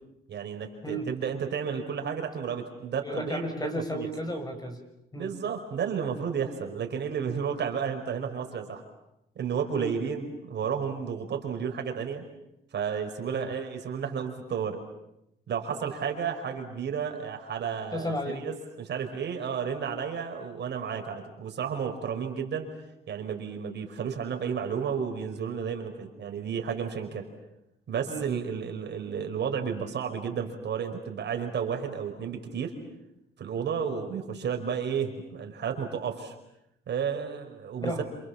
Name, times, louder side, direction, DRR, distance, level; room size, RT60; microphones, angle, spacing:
voice 1, 0.3-4.1 5.1-8.8 9.4-12.2 12.7-14.8 15.5-22.7 23.1-27.3 27.9-32.8 33.4-36.3 36.9-37.9, right 7 dB, 60° right, 4 dB, 5.2 m, -32 dB
voice 2, 3.0-4.8 5.1-5.3 9.7-9.9 13.3-13.5 15.8-15.9 17.9-18.4 28.1-28.3 37.8-38.0, equal, 20° left, 5 dB, 6.7 m, -33 dB
29.0 x 27.5 x 7.3 m, 0.84 s
cardioid pair, 90°, 20 cm